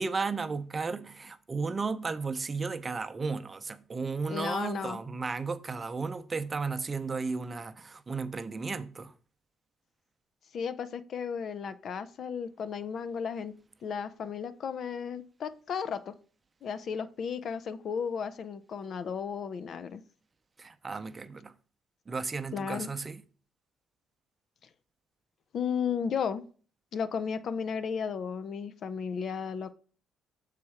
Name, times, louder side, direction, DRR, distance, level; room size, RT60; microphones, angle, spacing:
voice 1, 0.0-9.1 20.6-21.5 22.1-23.2, right 4 dB, 35° right, 0.6 m, -34 dB
voice 2, 4.3-5.0 10.5-13.5 13.8-16.1 16.6-20.0 22.5-22.9 25.5-26.4 26.9-29.7, left 6 dB, 60° left, 0.6 m, -34 dB
6.5 x 4.1 x 4.9 m
supercardioid pair, 70°, 0 cm